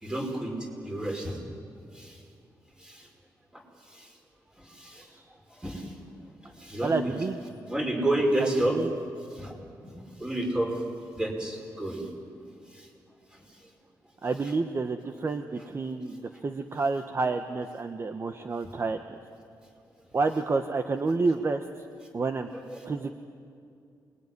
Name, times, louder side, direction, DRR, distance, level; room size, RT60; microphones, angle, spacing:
voice 1, 0.0-1.4 1.9-2.2 2.8-3.1 3.5-3.6 3.9-4.1 4.6-5.1 5.5-6.0 6.4-7.1 7.7-8.8 9.3-9.5 9.8-9.9 10.2-10.8 11.1-12.1 12.7-12.9 13.3-13.7 22.5-22.9, right 1 dB, 10° right, 2 dB, 5.1 m, -31 dB
voice 2, 6.8-7.4 8.6-8.9 14.2-19.0 20.1-21.6 22.1-22.5 22.8-23.1, right 3 dB, 35° right, 7 dB, 1.1 m, -29 dB
28.0 x 21.0 x 9.8 m, 2.4 s
wide cardioid pair, 130°, 8 cm